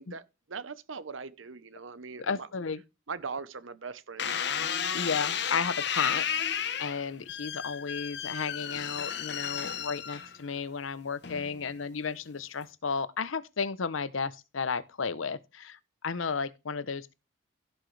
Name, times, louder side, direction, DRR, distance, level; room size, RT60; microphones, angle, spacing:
voice 1, 0.0-2.5 3.1-4.5, right 5 dB, 80° right, 0.9 m, -40 dB
voice 2, 2.2-2.8 4.9-15.8 16.0-17.1, left 5 dB, 85° left, 0.8 m, -33 dB
sound 1, 4.2-10.6 11.2-11.7, left 8 dB, 55° left, 1.0 m, -33 dB
16.5 x 6.0 x 3.3 m
head